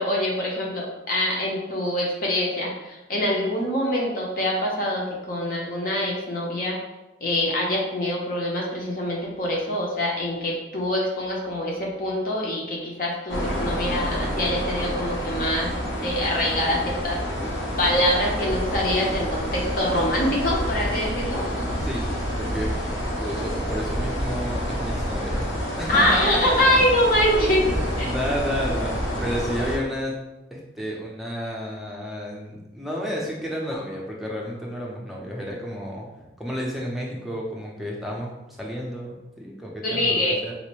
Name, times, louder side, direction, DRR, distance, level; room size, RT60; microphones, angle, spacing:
voice 1, 0.0-6.8 7.2-17.2 17.8-21.4 25.9-27.7 28.0-28.1 39.8-40.4, left 1 dB, 45° left, -2 dB, 0.7 m, -24 dB
sound 1, 13.3-29.8, equal, 80° left, 0.9 m, -28 dB
voice 2, 22.4-22.7 23.2-25.4 25.8-26.8 27.7-30.1 30.5-38.3 38.6-40.5, equal, ahead, -4 dB, 0.5 m, -31 dB
4.0 x 2.1 x 3.0 m, 0.98 s
head